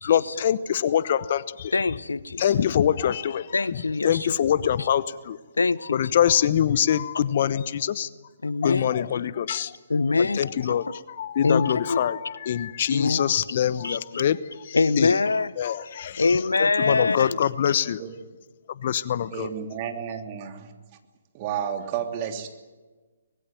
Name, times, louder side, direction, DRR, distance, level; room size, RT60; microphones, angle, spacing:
voice 1, 0.0-1.7 2.4-5.4 5.9-8.1 8.6-9.7 10.4-15.2 15.6-18.0 18.8-19.5, left 9 dB, 45° left, 0.9 m, -24 dB
voice 2, 1.7-2.4 3.5-4.3 4.8-4.9 5.6-6.0 8.4-8.9 9.9-10.4 10.9-11.0 11.4-12.0 12.9-13.4 13.8-14.2 14.7-15.5 16.2-17.4, left 3 dB, 75° left, 0.9 m, -24 dB
voice 3, 19.3-20.7 21.3-22.5, right 8 dB, 35° right, 3.1 m, -31 dB
24.5 x 21.5 x 9.3 m
figure-of-eight pair, 135°, 0 cm